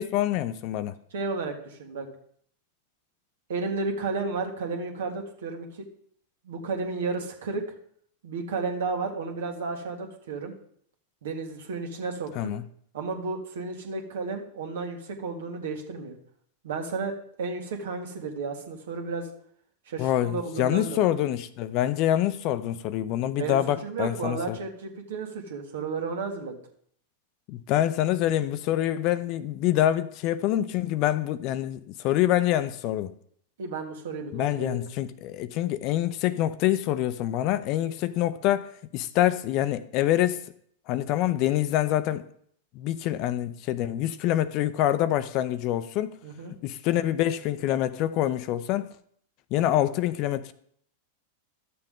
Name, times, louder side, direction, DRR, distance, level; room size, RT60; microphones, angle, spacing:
voice 1, 0.0-0.9 12.4-12.6 20.0-24.6 27.5-33.1 34.3-40.4 40.9-42.3 42.7-46.1 46.6-48.9 49.5-50.5, left 13 dB, 50° left, 0.6 m, -26 dB
voice 2, 1.1-2.1 3.5-5.7 6.4-7.6 8.2-10.5 11.2-12.6 12.9-16.1 16.6-19.3 19.9-21.1 23.3-26.5 33.6-34.8 46.2-46.5, right 4 dB, 75° right, 1.7 m, -33 dB
11.5 x 6.8 x 3.8 m
hypercardioid pair, 100°, 0 cm